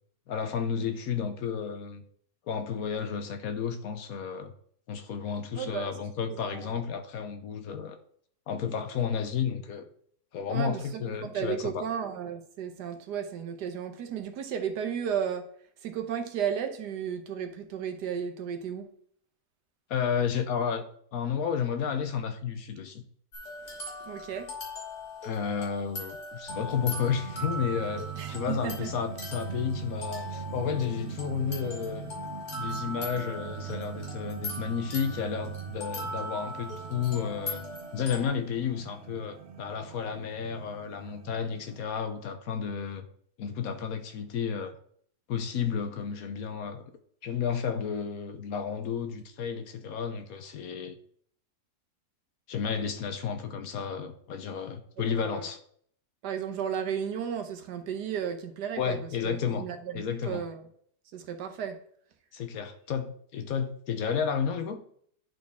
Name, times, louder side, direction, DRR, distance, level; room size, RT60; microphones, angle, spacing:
voice 1, 0.3-2.0 2.5-4.5 4.9-8.0 8.5-9.9 10.3-11.8 19.9-20.8 21.1-23.0 25.2-32.1 32.6-37.7 37.9-43.1 43.4-44.8 45.3-46.9 47.2-51.0 52.5-55.6 58.8-59.7 59.9-60.4 62.3-64.8, left 7 dB, 70° left, 1.1 m, -32 dB
voice 2, 5.6-5.9 6.3-6.8 10.5-15.5 15.8-18.9 24.0-24.5 28.2-28.9 55.2-55.5 56.2-60.7 61.1-61.8, right 8 dB, 85° right, 1.5 m, -34 dB
sound 1, 23.3-38.3, left 1 dB, 45° left, 2.0 m, -40 dB
sound 2, 26.5-41.9, right 9 dB, 60° right, 0.8 m, -41 dB
10.5 x 4.2 x 3.5 m
omnidirectional pair, 1.7 m